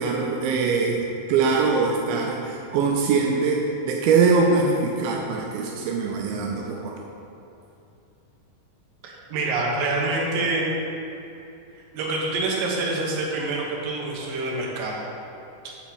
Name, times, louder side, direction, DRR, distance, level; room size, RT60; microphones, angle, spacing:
voice 1, 0.0-7.0, right 4 dB, 85° right, 0 dB, 2.5 m, -23 dB
voice 2, 9.0-10.7 11.7-15.0, right 2 dB, 70° right, -2 dB, 2.8 m, -26 dB
8.7 x 4.2 x 7.0 m, 2.8 s
omnidirectional pair, 4.2 m